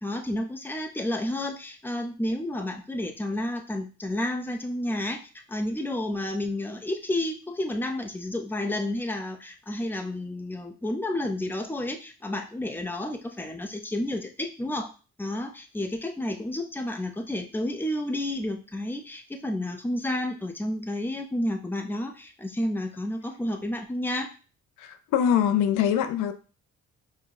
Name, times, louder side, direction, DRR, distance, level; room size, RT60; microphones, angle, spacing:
voice 1, 0.0-5.2 5.5-14.9 15.2-24.3, left 1 dB, 5° left, 4 dB, 0.7 m, -31 dB
voice 2, 24.8-26.3, left 9 dB, 85° left, 9 dB, 0.6 m, -23 dB
4.6 x 2.3 x 3.9 m, 0.35 s
cardioid pair, 90°, 30 cm